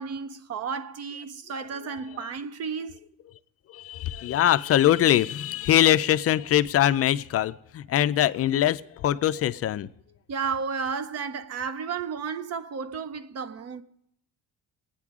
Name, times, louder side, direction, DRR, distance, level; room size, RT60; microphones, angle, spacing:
voice 1, 0.0-3.0 10.3-13.8, right 5 dB, 45° right, 0.6 m, -32 dB
voice 2, 3.7-9.9, left 12 dB, 45° left, 0.4 m, -22 dB
26.5 x 9.2 x 3.6 m
cardioid pair, 150°, 35 cm